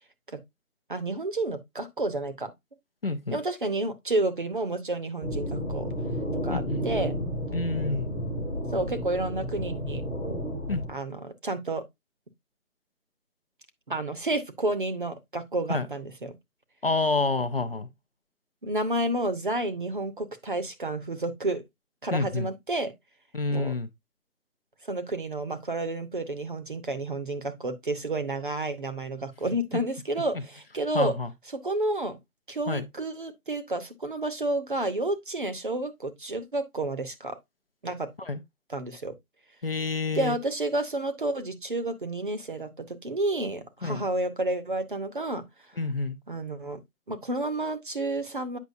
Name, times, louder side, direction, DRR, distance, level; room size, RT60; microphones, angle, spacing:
voice 1, 0.9-2.5 3.3-5.9 6.3-7.1 8.7-10.0 10.9-11.8 13.9-16.3 18.6-21.6 22.0-22.9 23.5-23.7 24.9-31.2 31.5-32.2 32.5-37.4 37.8-38.1 38.7-39.1 40.1-45.4 46.3-46.8 47.1-48.6, right 2 dB, 35° right, 0.8 m, -30 dB
voice 2, 3.0-3.4 6.5-6.8 7.5-8.1 10.7-10.8 15.7-15.9 16.8-17.9 22.1-22.5 23.3-23.9 30.9-31.3 32.7-32.9 38.2-38.4 39.6-40.4 43.8-44.1 45.8-46.2, left 3 dB, 40° left, 0.7 m, -28 dB
sound 1, 5.2-10.9, equal, ahead, 0.9 m, -31 dB
8.2 x 5.9 x 2.6 m
figure-of-eight pair, 165°, 44 cm